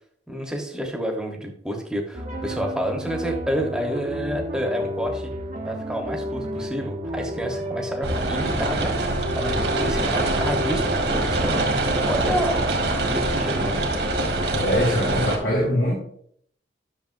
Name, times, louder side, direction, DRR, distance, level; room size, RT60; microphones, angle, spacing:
voice 1, 0.3-5.3 5.6-8.9 9.3-11.6 12.0-13.8, equal, 5° right, 1 dB, 1.3 m, -29 dB
sound 1, 2.1-13.1, equal, 45° right, 1.1 m, -33 dB
sound 2, 8.0-15.4, right 2 dB, 65° right, 1.9 m, -24 dB
voice 2, 14.5-16.0, left 1 dB, 85° left, -6 dB, 3.1 m, -22 dB
10.5 x 6.8 x 2.7 m, 0.63 s
head